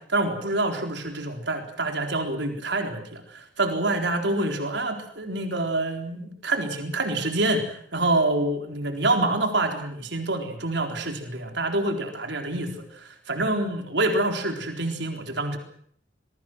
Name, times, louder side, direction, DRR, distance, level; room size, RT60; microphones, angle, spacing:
voice 1, 0.0-15.6, right 2 dB, 75° right, 4 dB, 4.0 m, -27 dB
25.5 x 22.5 x 6.2 m, 0.62 s
head